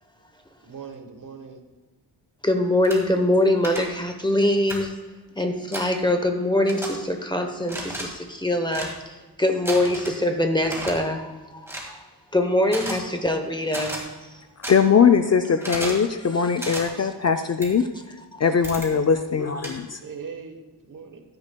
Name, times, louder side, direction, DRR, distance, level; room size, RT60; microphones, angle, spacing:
voice 1, 0.6-1.6 20.0-21.2, right 6 dB, 50° right, 5 dB, 1.2 m, -40 dB
voice 2, 2.4-4.9 5.4-12.0 12.3-14.0 18.3-18.4, left 1 dB, 10° left, 5 dB, 0.9 m, -23 dB
sound 1, 2.8-3.0 3.6-3.8 4.7-4.8 5.7-5.9 6.7-6.9 7.6-8.0 8.7-8.9 9.7-10.2 10.6-10.9 11.7-11.9 12.7-13.0 13.7-14.0 14.6-14.7 15.6-16.0 16.6-16.8 17.6-17.7 18.6-18.9 19.6-19.7, right 1 dB, 5° right, 1.9 m, -32 dB
voice 3, 14.6-20.0, left 6 dB, 40° left, 7 dB, 0.5 m, -21 dB
15.0 x 11.0 x 2.3 m, 1.2 s
wide cardioid pair, 165°, 40 cm